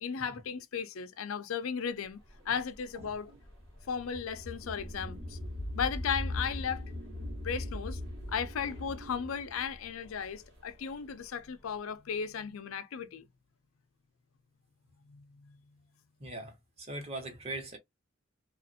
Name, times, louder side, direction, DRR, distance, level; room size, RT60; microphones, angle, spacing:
voice 1, 0.0-2.2 2.5-3.3 3.9-5.4 5.7-6.9 7.4-8.0 8.3-13.3 15.1-15.6, left 6 dB, 80° left, 0.5 m, -35 dB
sound 1, 2.3-11.3, left 1 dB, 65° right, 1.2 m, -40 dB
voice 2, 16.2-17.8, right 2 dB, 30° right, 1.0 m, -41 dB
2.9 x 2.5 x 2.6 m
head